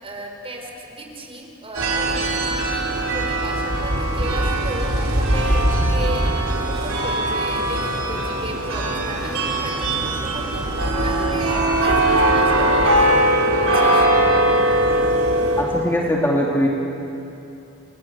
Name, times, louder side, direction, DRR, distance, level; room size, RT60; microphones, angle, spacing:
voice 1, 0.0-13.3 13.6-14.1, right 1 dB, 30° right, 2 dB, 4.5 m, -34 dB
sound 1, 1.7-15.6, right 1 dB, 85° right, 4.9 m, -20 dB
voice 2, 15.6-16.7, equal, 10° left, -2 dB, 2.7 m, -20 dB
29.5 x 23.0 x 8.7 m, 2.8 s
head